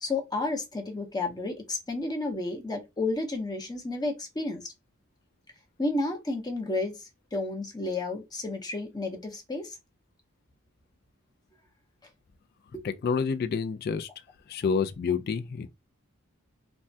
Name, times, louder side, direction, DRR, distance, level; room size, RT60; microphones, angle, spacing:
voice 1, 0.0-4.7 5.8-9.8 12.7-12.8, left 2 dB, 20° left, 0.7 m, -31 dB
voice 2, 12.8-14.1 14.5-15.7, left 5 dB, 45° left, 0.3 m, -28 dB
3.4 x 2.1 x 2.6 m
head